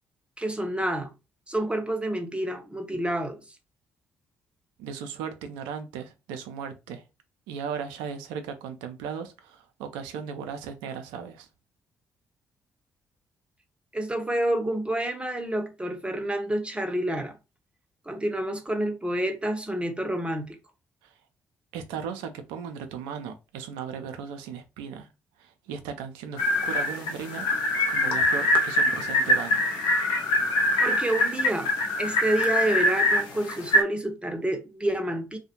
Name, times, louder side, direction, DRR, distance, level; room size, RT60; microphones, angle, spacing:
voice 1, 0.4-1.1 1.5-3.4 13.9-17.4 18.1-20.6 30.8-31.7 32.0-35.4, right 1 dB, 15° right, 0.6 m, -28 dB
voice 2, 4.8-7.0 7.5-11.5 21.0-21.2 21.7-25.1 25.4-27.5 27.9-29.7, right 7 dB, 75° right, 0.4 m, -37 dB
sound 1, 26.4-33.8, left 1 dB, 65° left, 0.5 m, -24 dB
2.4 x 2.1 x 2.8 m
figure-of-eight pair, 40°, 8 cm